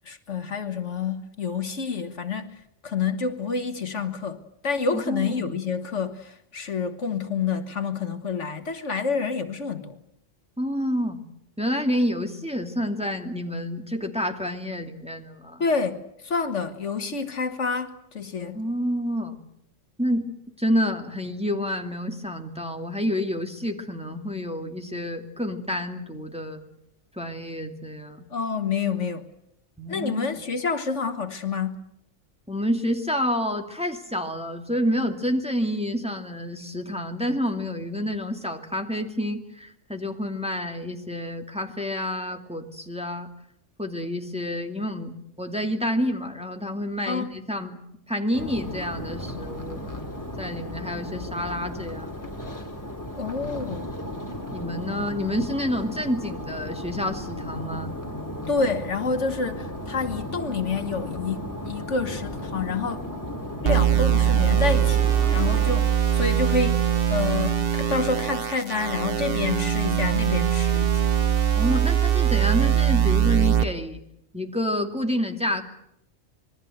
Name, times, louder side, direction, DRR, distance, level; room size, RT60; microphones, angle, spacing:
voice 1, 0.1-2.6 2.8-10.0 15.6-18.6 28.3-29.3 29.9-31.8 47.1-47.3 53.2-53.9 58.5-63.0 63.6-71.0, left 5 dB, 65° left, 1.8 m, -28 dB
voice 2, 4.9-5.5 10.6-11.2 11.6-15.7 18.5-19.4 20.0-20.3 20.6-26.6 27.2-28.3 29.8-30.3 32.5-43.3 43.8-47.8 48.1-49.9 50.4-52.1 54.5-58.0 71.5-74.0 74.3-75.6, equal, 5° right, 2.3 m, -28 dB
sound 1, 48.3-65.8, left 1 dB, 15° left, 3.3 m, -35 dB
sound 2, 63.7-73.6, right 10 dB, 45° right, 1.6 m, -22 dB
26.5 x 21.5 x 7.9 m
omnidirectional pair, 1.3 m